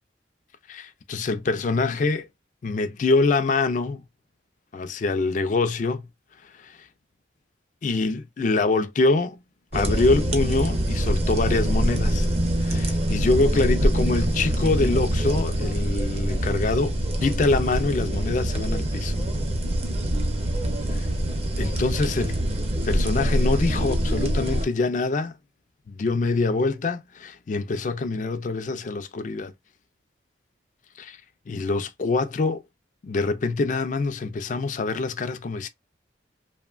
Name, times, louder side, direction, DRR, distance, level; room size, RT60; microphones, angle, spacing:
voice 1, 0.7-2.3 2.6-4.0 4.7-6.1 6.4-6.9 7.8-9.4 9.7-12.3 12.6-19.2 20.9-21.1 21.6-22.4 22.8-25.4 25.9-29.5 31.0-31.2 31.5-32.6 33.0-35.7, left 3 dB, 40° left, 0.3 m, -25 dB
sound 1, 9.7-24.6, right 1 dB, 35° right, 0.6 m, -24 dB
2.8 x 2.1 x 2.3 m
head